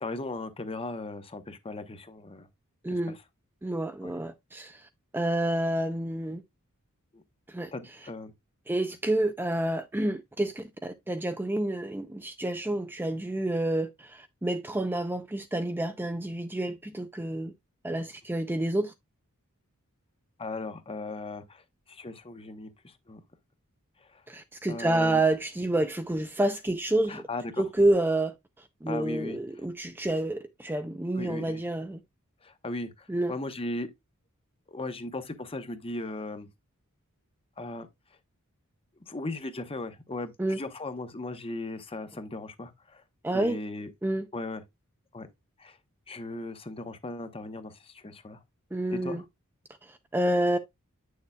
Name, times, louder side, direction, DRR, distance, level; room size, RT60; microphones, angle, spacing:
voice 1, 0.0-2.5 3.1-3.2 4.0-4.1 7.1-7.2 7.7-8.3 20.4-21.6 21.9-23.2 24.0-24.2 24.7-25.2 27.1-27.6 28.9-29.4 31.1-31.6 32.4-33.9 34.7-36.5 37.6-37.9 39.1-43.0 43.3-43.9 44.3-44.6 45.1-45.3 45.6-45.8 46.1-48.4 48.9-49.2, left 2 dB, 25° left, 0.9 m, -37 dB
voice 2, 2.8-3.2 3.6-4.9 5.1-6.4 7.5-7.7 8.7-17.5 17.8-18.9 24.3-27.3 27.6-28.3 28.8-32.0 33.1-33.3 40.4-40.6 43.2-43.6 44.0-44.3 48.7-49.2 49.8-50.6, right 1 dB, 10° right, 0.5 m, -29 dB
8.5 x 6.5 x 2.2 m
head